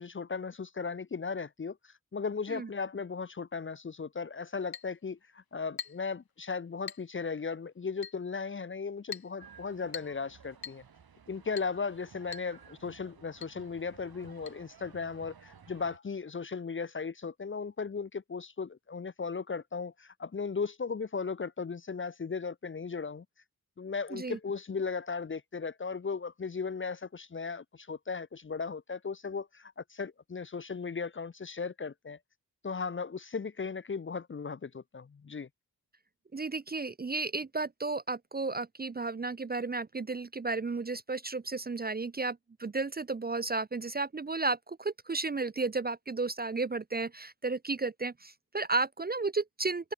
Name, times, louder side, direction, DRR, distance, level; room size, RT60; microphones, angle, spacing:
voice 1, 0.0-10.8 11.3-23.2 23.8-32.2 32.6-35.5, left 5 dB, 35° left, 0.6 m, -36 dB
Chink clink, 4.7-4.9 5.8-6.1 6.9-7.1 8.0-8.2 9.1-9.3 9.9-10.2 10.6-10.8 11.6-11.8 12.3-12.5 12.8-12.9 13.4-13.6 14.5-14.6, left 7 dB, 70° left, 2.5 m, -42 dB
sound 1, 9.4-16.0, right 7 dB, 75° right, 2.8 m, -55 dB
voice 2, 36.3-49.9, right 3 dB, 25° right, 0.5 m, -33 dB
wide cardioid pair, 135°, 37 cm